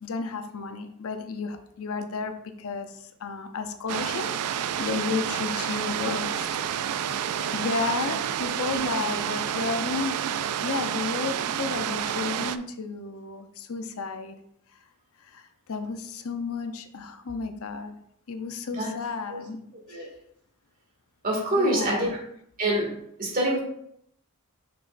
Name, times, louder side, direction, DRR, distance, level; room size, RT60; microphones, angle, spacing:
voice 1, 0.0-6.6 6.9-14.4 15.2-17.9 18.3-19.6 19.9-20.1 21.6-22.1, left 4 dB, 70° left, 7 dB, 0.7 m, -33 dB
sound 1, 3.9-12.6, right 9 dB, 85° right, 0.4 m, -29 dB
voice 2, 21.2-22.2 22.6-22.9 23.2-23.6, right 1 dB, 40° right, -2 dB, 2.2 m, -25 dB
6.5 x 6.2 x 2.6 m, 0.72 s
head